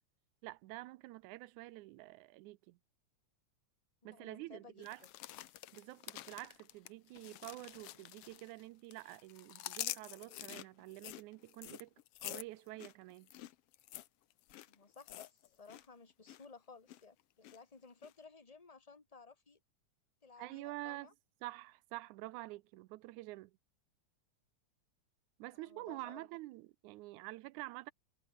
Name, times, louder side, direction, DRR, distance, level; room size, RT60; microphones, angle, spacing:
voice 1, 0.4-2.8 4.0-5.0 5.7-11.9 12.2-13.3 20.4-21.1 21.4-23.5 25.4-27.9, right 19 dB, 85° right, 2.0 m, -48 dB
voice 2, 4.0-5.1 14.7-19.6 20.2-21.1 25.5-26.3, left 4 dB, 20° left, 1.2 m, -57 dB
sound 1, 4.8-8.6 8.9-15.9 16.1-16.5 16.9-17.6 18.0-18.1, left 14 dB, 70° left, 1.5 m, -48 dB
omnidirectional pair, 3.5 m